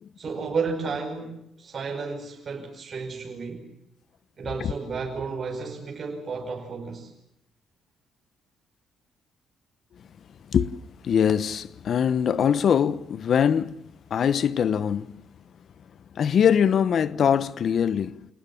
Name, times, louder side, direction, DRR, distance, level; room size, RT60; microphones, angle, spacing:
voice 1, 0.2-3.7 4.4-7.1, right 4 dB, 45° right, 5.1 m, -32 dB
voice 2, 11.0-15.2 16.1-18.3, left 8 dB, 60° left, 1.0 m, -23 dB
27.5 x 19.5 x 7.2 m
cardioid pair, 90°, 0 cm